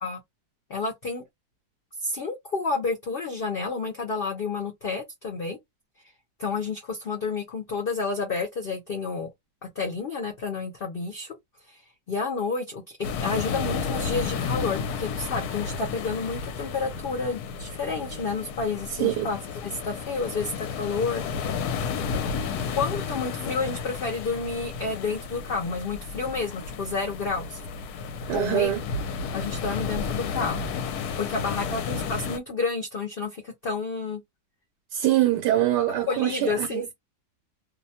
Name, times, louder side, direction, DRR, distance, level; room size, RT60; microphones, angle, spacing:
voice 1, 0.7-1.2 2.0-5.6 6.4-9.3 9.8-11.4 11.7-11.8 12.1-13.0 13.2-21.2 22.7-27.6 28.3-28.7 29.3-30.7 31.2-34.2 36.1-36.9, left 4 dB, 55° left, 0.6 m, -30 dB
sound 1, 13.0-32.4, left 5 dB, 70° left, 1.0 m, -32 dB
voice 2, 28.3-28.8 34.9-36.9, right 13 dB, 75° right, 1.2 m, -24 dB
2.8 x 2.1 x 2.7 m
omnidirectional pair, 1.8 m